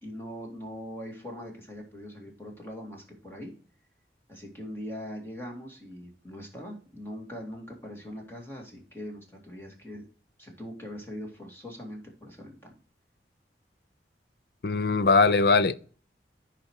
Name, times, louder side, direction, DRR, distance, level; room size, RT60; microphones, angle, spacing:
voice 1, 0.0-3.5 4.3-10.1 10.4-12.8, equal, 15° left, 2.3 m, -41 dB
voice 2, 14.6-15.8, left 4 dB, 60° left, 0.5 m, -21 dB
8.5 x 5.1 x 4.6 m
head